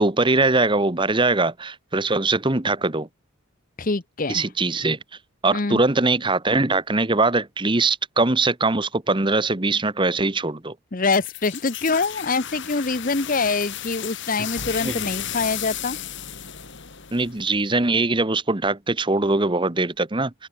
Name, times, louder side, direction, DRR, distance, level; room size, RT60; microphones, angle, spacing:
voice 1, 0.0-3.1 4.3-5.0 5.4-10.7 14.8-15.0 17.1-20.3, right 3 dB, 20° right, 1.1 m, -21 dB
voice 2, 3.8-4.4 5.5-5.8 10.9-16.0, left 3 dB, 40° left, 1.0 m, -24 dB
sound 1, 11.1-17.7, left 10 dB, 55° left, 3.3 m, -34 dB
open air
head